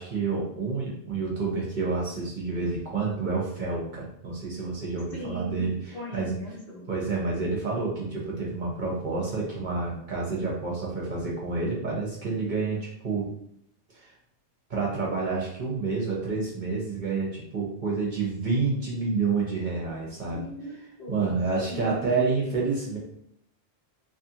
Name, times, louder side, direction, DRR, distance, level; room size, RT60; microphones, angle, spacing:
voice 1, 0.0-5.8 6.1-6.4 6.9-13.3 13.9-14.1 14.7-20.4 21.1-23.0, right 4 dB, 50° right, -4 dB, 0.8 m, -29 dB
voice 2, 5.1-5.6 5.9-6.9 20.3-21.3 21.7-22.3, equal, 60° left, -5 dB, 1.1 m, -38 dB
2.6 x 2.4 x 2.7 m, 0.71 s
omnidirectional pair, 1.2 m